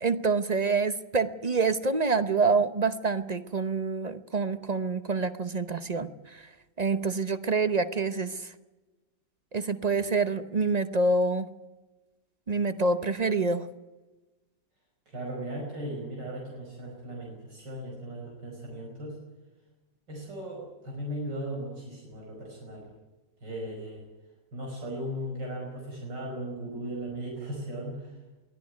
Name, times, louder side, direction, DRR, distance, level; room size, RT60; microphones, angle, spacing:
voice 1, 0.0-6.4 6.8-8.5 9.5-11.5 12.5-13.7, right 4 dB, 45° right, 11 dB, 0.5 m, -27 dB
voice 2, 15.1-19.2 20.1-22.8 23.4-24.1 24.5-28.1, right 1 dB, 65° right, -2 dB, 6.1 m, -37 dB
23.0 x 15.0 x 9.3 m, 1.1 s
omnidirectional pair, 2.0 m